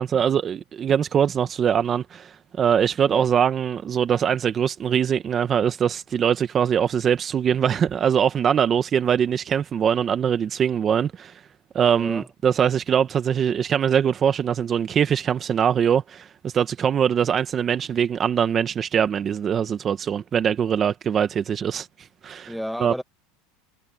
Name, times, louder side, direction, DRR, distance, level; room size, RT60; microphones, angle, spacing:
voice 1, 0.0-11.3 11.7-22.5 22.8-22.9, right 8 dB, 30° right, 1.0 m, -22 dB
voice 2, 11.9-12.3 22.5-23.0, equal, ahead, 1.6 m, -32 dB
supercardioid pair, 130°, 0 cm